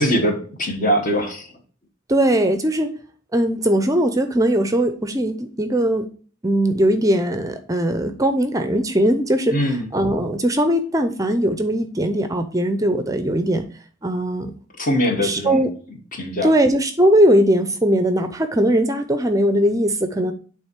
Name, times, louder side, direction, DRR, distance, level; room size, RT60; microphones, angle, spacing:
voice 1, 0.0-1.5 9.5-9.9 14.8-15.6 16.1-16.5, equal, 45° left, 1.4 m, -21 dB
voice 2, 2.1-2.9 3.3-6.1 6.4-13.6 14.0-14.5 15.2-15.7 16.4-20.3, right 1 dB, 15° right, 0.5 m, -19 dB
8.9 x 3.6 x 4.5 m
head